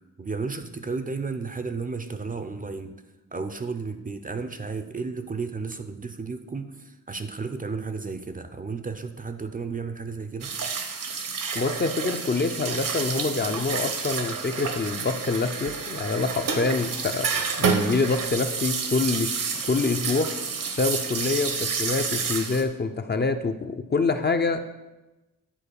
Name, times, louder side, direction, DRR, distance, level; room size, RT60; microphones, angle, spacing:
voice 1, 0.2-2.9 3.3-6.7 7.1-10.5, right 4 dB, 25° right, 9 dB, 0.5 m, -33 dB
sound 1, 10.4-22.6, right 5 dB, 70° right, 1.0 m, -29 dB
voice 2, 11.5-17.3 17.6-19.3 19.7-20.3 20.8-24.6, left 4 dB, 30° left, 7 dB, 0.5 m, -26 dB
9.1 x 4.3 x 6.9 m, 1.0 s
wide cardioid pair, 130°, 34 cm